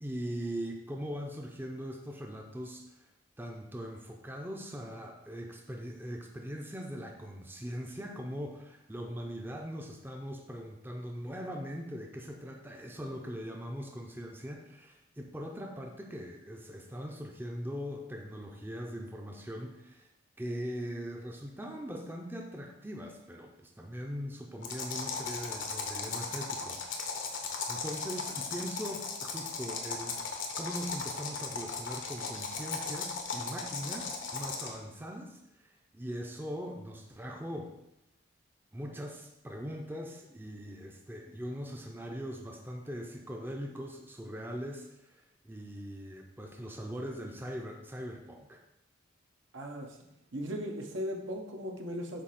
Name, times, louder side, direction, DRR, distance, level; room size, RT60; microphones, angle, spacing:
voice 1, 0.0-3.1 3.4-20.1 20.4-27.4 27.7-30.2 30.6-37.8 38.7-48.6, equal, 10° right, 1 dB, 0.6 m, -41 dB
sound 1, 24.6-34.8, left 4 dB, 80° left, 1.1 m, -37 dB
voice 2, 49.5-50.0 50.3-52.2, equal, 80° right, 1 dB, 1.1 m, -37 dB
8.2 x 2.9 x 5.8 m, 0.87 s
head